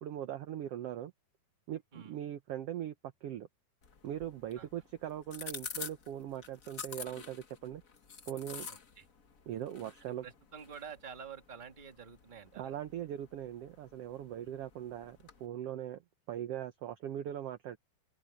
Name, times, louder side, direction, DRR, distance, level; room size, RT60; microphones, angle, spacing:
voice 1, 0.0-1.1 1.7-3.5 4.0-7.8 8.3-8.7 9.5-10.2 12.6-16.0 16.3-17.8, right 11 dB, 75° right, 1.4 m, -40 dB
sound 1, 3.8-15.5, left 6 dB, 60° left, 0.8 m, -49 dB
voice 2, 8.7-9.0 10.1-12.8, right 6 dB, 20° right, 1.3 m, -49 dB
open air
omnidirectional pair, 3.8 m